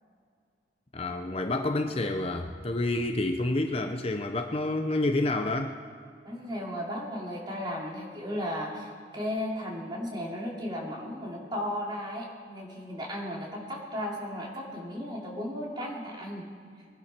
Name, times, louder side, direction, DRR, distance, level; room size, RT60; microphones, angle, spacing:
voice 1, 0.9-5.8, left 2 dB, 35° left, 5 dB, 0.7 m, -29 dB
voice 2, 6.2-16.4, equal, 25° right, -2 dB, 2.8 m, -35 dB
22.0 x 11.0 x 4.4 m, 2.2 s
head